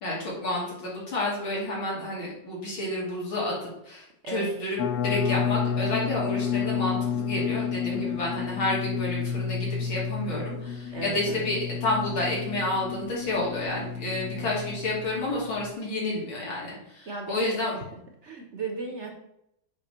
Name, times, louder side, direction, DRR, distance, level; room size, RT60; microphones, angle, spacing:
voice 1, 0.0-17.7, left 2 dB, 90° left, -4 dB, 3.5 m, -30 dB
voice 2, 4.2-4.6 7.9-8.2 10.9-11.5 14.3-14.5 17.1-17.8 18.2-19.1, right 3 dB, 45° right, 2 dB, 1.0 m, -36 dB
sound 1, 4.8-15.7, left 7 dB, 70° left, 1.0 m, -31 dB
8.0 x 3.7 x 6.6 m, 0.81 s
omnidirectional pair, 2.1 m